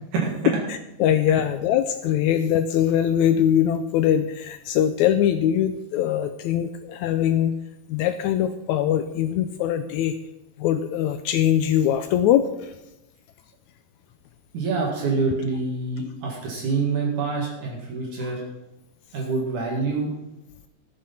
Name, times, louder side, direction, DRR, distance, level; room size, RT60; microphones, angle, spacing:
voice 1, 0.7-7.5 7.9-10.2 10.6-12.8, left 10 dB, 85° left, 10 dB, 1.7 m, -22 dB
voice 2, 14.5-18.4 19.1-20.1, right 4 dB, 65° right, -1 dB, 3.4 m, -26 dB
14.5 x 7.7 x 5.7 m, 0.92 s
omnidirectional pair, 3.8 m